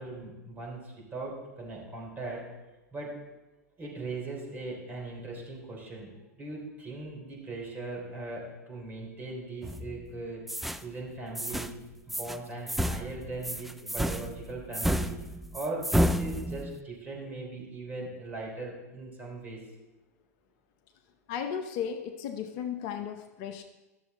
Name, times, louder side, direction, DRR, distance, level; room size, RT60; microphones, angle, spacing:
voice 1, 0.0-2.4 2.9-3.1 3.8-10.4 10.8-11.8 12.1-15.1 15.5-19.6, right 2 dB, 20° right, -2 dB, 3.4 m, -39 dB
sound 1, 9.6-10.1 10.5-10.8 11.4-11.8 12.1-12.4 12.7-16.8, equal, ahead, 0.3 m, -31 dB
voice 2, 21.3-23.6, left 8 dB, 45° left, 7 dB, 0.7 m, -35 dB
12.5 x 6.9 x 4.0 m, 1.1 s
hypercardioid pair, 100°, 9 cm